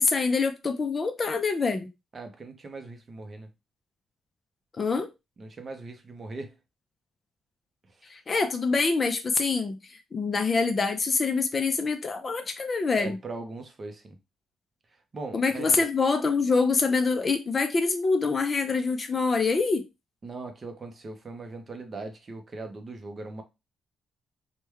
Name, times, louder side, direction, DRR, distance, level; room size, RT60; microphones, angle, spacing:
voice 1, 0.0-1.9 4.8-5.1 8.1-13.2 15.3-19.8, left 4 dB, 30° left, 0.4 m, -25 dB
voice 2, 2.1-3.5 5.4-6.5 12.9-14.2 15.1-15.8 20.2-23.4, right 3 dB, 30° right, 0.6 m, -39 dB
3.1 x 2.1 x 3.4 m
cardioid pair, 155°, 0 cm